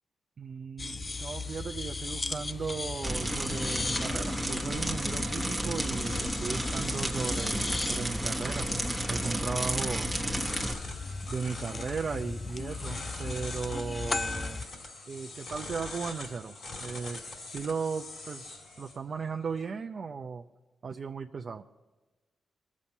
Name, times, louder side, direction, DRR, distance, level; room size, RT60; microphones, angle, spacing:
voice 1, 0.4-8.7 9.1-10.1 11.2-14.7 15.1-16.5 16.8-17.2 17.5-18.5 18.8-20.4 20.8-21.6, right 5 dB, 50° right, 3 dB, 0.5 m, -36 dB
sound 1, 0.8-14.7, left 3 dB, 25° left, 0.4 m, -37 dB
sound 2, 2.4-19.6, left 3 dB, 65° left, 2.5 m, -45 dB
sound 3, 3.0-10.7, right 1 dB, 5° right, 1.1 m, -32 dB
21.5 x 7.3 x 5.4 m, 1.2 s
cardioid pair, 100°, 0 cm